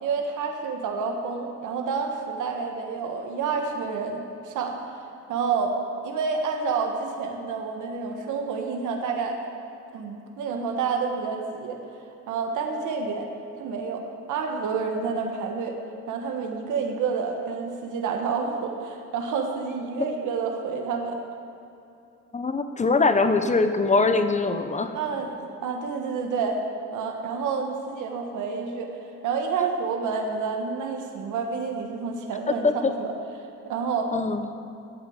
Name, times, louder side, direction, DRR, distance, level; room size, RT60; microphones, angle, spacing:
voice 1, 0.0-4.8 5.3-5.7 6.0-9.4 9.9-11.8 12.3-13.3 13.6-14.0 14.3-15.8 16.1-21.2 24.9-26.6 26.9-28.9 29.2-33.1 33.6-34.1, right 5 dB, 80° right, 3 dB, 1.4 m, -29 dB
voice 2, 22.3-24.9 32.6-32.9 34.1-34.4, left 3 dB, 25° left, 8 dB, 1.0 m, -22 dB
11.0 x 8.6 x 8.1 m, 2.8 s
cardioid pair, 90°, 30 cm